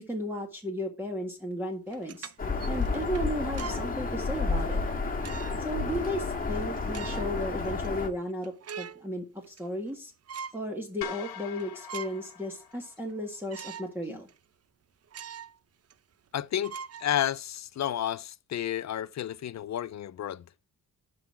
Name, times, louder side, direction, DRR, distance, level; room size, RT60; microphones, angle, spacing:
voice 1, 0.0-2.3 2.7-4.8 5.6-10.1 10.5-14.3, equal, 5° right, 1.8 m, -34 dB
sound 1, 1.9-3.9 4.4-4.5 5.2-5.7 6.1-6.2 6.8-7.4 7.8-7.9 8.3-9.1 9.4-10.0 10.3-10.6 11.1-11.2 11.6-12.3 12.7-12.8 13.5-13.9 14.3-14.4 15.1-15.6 15.9-16.0 16.6-17.6, right 7 dB, 45° right, 0.6 m, -42 dB
Bird vocalization bird call bird song, 2.4-8.1, left 3 dB, 25° left, 1.8 m, -31 dB
sound 2, 11.0-13.4, left 9 dB, 90° left, 1.0 m, -43 dB
voice 2, 16.3-16.7 17.0-20.4, left 11 dB, 50° left, 0.5 m, -31 dB
11.0 x 4.0 x 4.6 m
cardioid pair, 105°, 36 cm